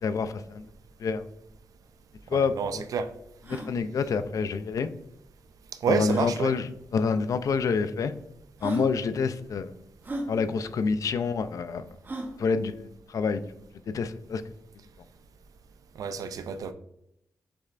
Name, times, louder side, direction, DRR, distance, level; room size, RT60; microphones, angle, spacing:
voice 1, 0.0-0.6 1.0-1.2 2.3-2.8 3.5-4.9 5.9-6.6 6.9-8.1 8.6-9.7 10.3-11.8 12.4-12.8 13.1-13.4 13.9-14.4, left 5 dB, 70° left, 11 dB, 0.4 m, -27 dB
sound 1, 1.9-2.0 2.1-2.2 2.8-2.9 3.4-3.7 5.1-5.2 6.0-6.4 7.3-7.4 8.2-8.3 8.6-8.9 10.0-10.3 12.0-12.4, right 1 dB, 35° right, 0.8 m, -35 dB
voice 2, 2.3-3.1 5.8-6.5 16.0-16.7, right 5 dB, 80° right, 11 dB, 0.4 m, -29 dB
6.8 x 3.2 x 2.4 m, 0.79 s
cardioid pair, 85°, 6 cm